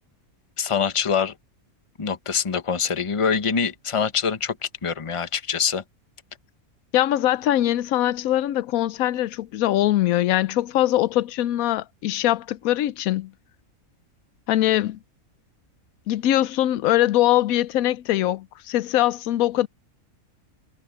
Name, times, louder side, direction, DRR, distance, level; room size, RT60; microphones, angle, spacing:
voice 1, 0.6-1.3 2.0-4.6 4.8-5.8, left 6 dB, 25° left, 0.9 m, -24 dB
voice 2, 6.9-13.3 14.5-15.0 16.1-19.7, left 14 dB, 80° left, 1.0 m, -22 dB
omnidirectional pair, 1.5 m